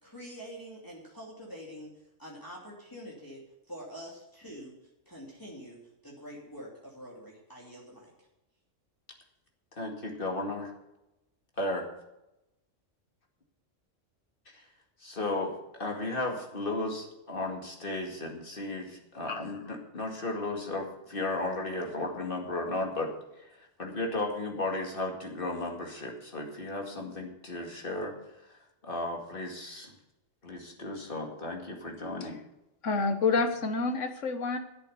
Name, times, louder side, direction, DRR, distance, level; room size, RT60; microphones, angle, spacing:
voice 1, 0.0-1.9 2.2-4.7 5.1-5.8 6.0-8.1, equal, 15° left, -4 dB, 2.9 m, -45 dB
voice 2, 9.8-10.7 11.6-11.9 14.5-14.6 15.0-15.5 15.8-23.1 23.8-28.1 28.8-29.9 30.4-32.4, left 2 dB, 45° left, 2 dB, 2.4 m, -34 dB
voice 3, 32.8-34.6, left 4 dB, 80° left, 7 dB, 1.6 m, -28 dB
11.0 x 8.3 x 6.9 m, 0.92 s
omnidirectional pair, 1.3 m